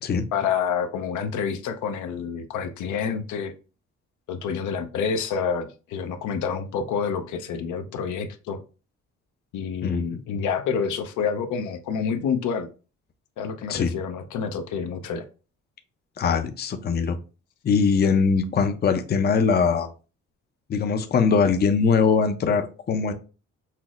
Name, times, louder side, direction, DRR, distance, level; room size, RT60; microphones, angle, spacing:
voice 1, 0.3-3.5 4.3-8.6 9.5-12.7 13.4-15.2, left 6 dB, 80° left, 7 dB, 0.6 m, -28 dB
voice 2, 9.8-10.2 13.7-13.9 16.2-17.2 17.6-19.9 20.7-23.1, left 5 dB, 35° left, 8 dB, 0.5 m, -22 dB
5.6 x 2.0 x 2.4 m, 0.33 s
cardioid pair, 90°, 30 cm